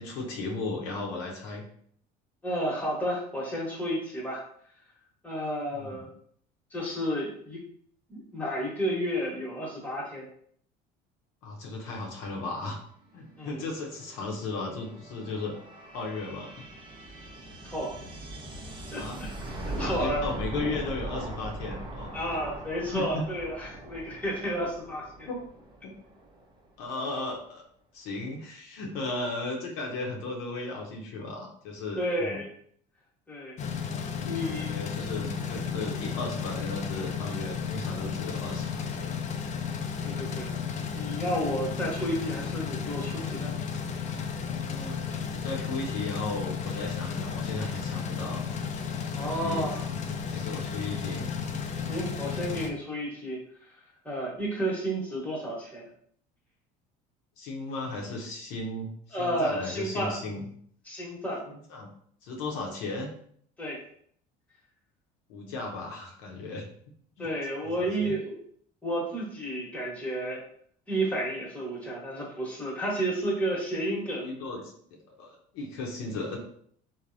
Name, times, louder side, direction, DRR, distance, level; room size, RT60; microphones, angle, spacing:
voice 1, 0.0-1.6 5.8-6.1 11.4-12.8 13.1-15.5 15.9-16.7 18.9-19.2 19.8-22.2 22.9-23.3 25.3-25.4 25.8-25.9 26.8-27.6 27.9-32.4 34.2-39.3 44.5-45.0 45.3-48.5 49.3-49.7 50.0-51.3 57.4-60.4 61.5-61.9 62.2-63.1 65.3-66.7 67.2-67.3 67.6-68.1 74.2-74.8 75.2-76.4, left 3 dB, 75° left, 0 dB, 0.7 m, -36 dB
voice 2, 2.4-4.4 5.2-6.1 6.7-7.7 8.1-10.3 13.4-13.6 17.6-17.9 18.9-19.3 19.6-20.2 22.1-25.3 32.0-32.5 33.3-33.5 34.2-34.8 40.0-40.5 40.9-43.5 49.1-49.9 50.3-50.5 51.9-53.7 54.0-55.9 59.1-60.2 60.9-61.4 63.6-63.8 67.2-68.4 68.8-70.4 70.9-74.3, right 1 dB, 5° left, -4 dB, 1.1 m, -31 dB
sound 1, 13.2-26.7, right 1 dB, 25° right, 0.6 m, -40 dB
sound 2, 33.6-52.7, left 6 dB, 40° left, 0.4 m, -33 dB
3.2 x 2.1 x 2.5 m, 0.62 s
supercardioid pair, 85°, 20 cm